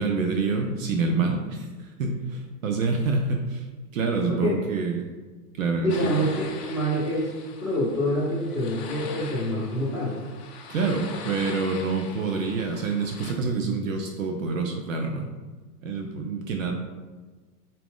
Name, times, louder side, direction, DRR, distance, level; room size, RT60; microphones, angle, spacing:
voice 1, 0.0-3.7 3.9-5.1 5.5-6.1 10.7-15.3 15.8-16.7, right 4 dB, 55° right, 3 dB, 0.6 m, -27 dB
voice 2, 4.1-4.5 5.8-7.3 7.6-10.1, equal, 5° right, -5 dB, 0.9 m, -26 dB
sound 1, 5.9-13.3, left 5 dB, 45° left, 0.6 m, -41 dB
4.1 x 2.6 x 3.6 m, 1.3 s
hypercardioid pair, 110°, 48 cm